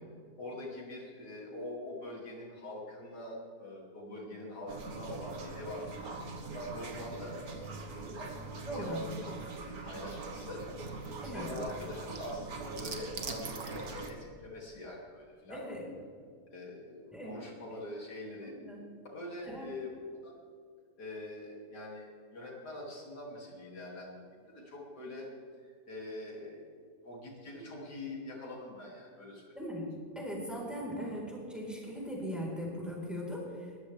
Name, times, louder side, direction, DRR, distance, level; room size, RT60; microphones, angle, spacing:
voice 1, 0.4-6.2 6.4-9.3 9.6-10.6 11.1-15.6 16.5-18.6 19.1-19.9 20.2-20.3 21.0-25.3 25.6-26.6 27.0-29.6, left 1 dB, 75° left, -3 dB, 3.2 m, -44 dB
sound 1, 4.7-14.1, right 3 dB, 65° right, 1.8 m, -42 dB
voice 2, 8.7-9.0 11.2-11.5 15.5-15.8 17.1-17.3 18.4-18.8 19.4-19.7 29.6-29.9 30.1-33.8, equal, ahead, -4 dB, 4.0 m, -39 dB
21.0 x 14.0 x 3.4 m, 2.2 s
omnidirectional pair, 1.7 m